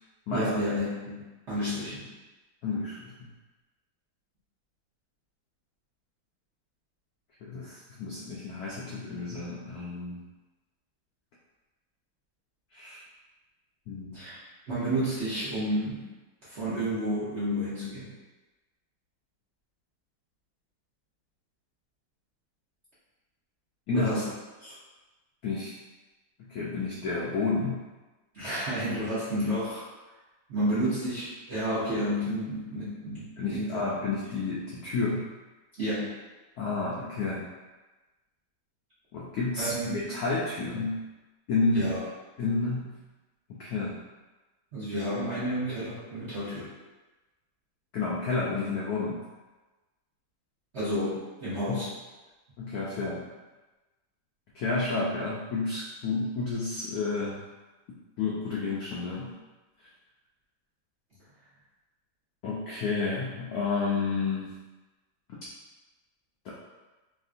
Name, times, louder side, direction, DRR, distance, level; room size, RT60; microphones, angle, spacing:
voice 1, 0.3-1.2 1.5-2.1 14.1-14.4 14.7-16.1 16.4-18.1 23.9-24.3 24.6-24.8 28.3-29.8 30.5-33.8 35.8-36.2 39.6-39.9 41.7-42.0 44.7-46.7 50.7-51.9, equal, 50° right, -12 dB, 0.8 m, -31 dB
voice 2, 2.6-3.3 7.4-10.2 12.7-13.0 13.9-14.2 23.9-24.1 25.4-25.7 26.4-27.8 33.4-35.3 36.6-37.4 39.1-41.0 41.5-41.9 42.4-43.0 43.5-44.0 47.9-49.2 51.7-51.9 52.6-53.2 54.5-57.4 57.9-59.3 62.4-64.5 66.4-66.5, left 3 dB, 80° left, -6 dB, 0.8 m, -30 dB
3.5 x 2.5 x 2.4 m, 1.2 s
omnidirectional pair, 2.2 m